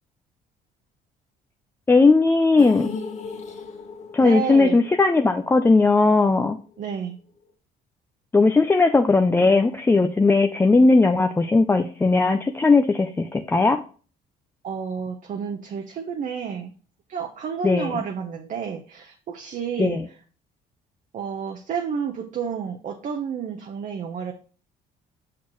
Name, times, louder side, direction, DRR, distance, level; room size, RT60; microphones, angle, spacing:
voice 1, 1.9-2.9 4.1-6.6 8.3-13.8 17.6-17.9 19.8-20.0, left 3 dB, 15° left, 6 dB, 0.4 m, -18 dB
sound 1, 2.6-6.7 7.0-7.1 7.4-7.5, left 4 dB, 45° left, 1.2 m, -37 dB
voice 2, 4.2-4.8 6.8-7.2 14.6-16.7 17.1-20.0 21.1-24.3, right 7 dB, 50° right, 4 dB, 0.8 m, -30 dB
7.5 x 6.0 x 3.0 m, 0.40 s
cardioid pair, 110°, 17 cm